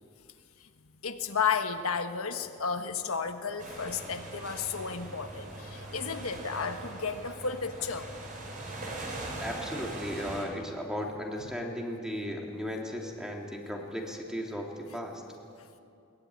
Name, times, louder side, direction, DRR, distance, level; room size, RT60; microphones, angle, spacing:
voice 1, 1.0-8.1, left 6 dB, 85° left, 7 dB, 1.4 m, -33 dB
sound 1, 3.6-10.5, right 2 dB, 40° right, 5.5 m, -41 dB
voice 2, 9.4-15.2, equal, 5° right, 0 dB, 3.1 m, -36 dB
22.0 x 20.0 x 9.7 m, 2.5 s
head